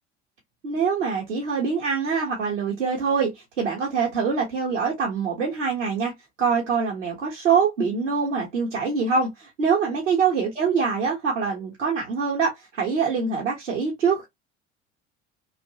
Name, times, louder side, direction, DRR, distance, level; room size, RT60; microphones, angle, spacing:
voice 1, 0.6-6.1 6.4-14.3, right 5 dB, 75° right, 1.0 m, -24 dB
2.9 x 2.4 x 2.7 m
figure-of-eight pair, 65°, 36 cm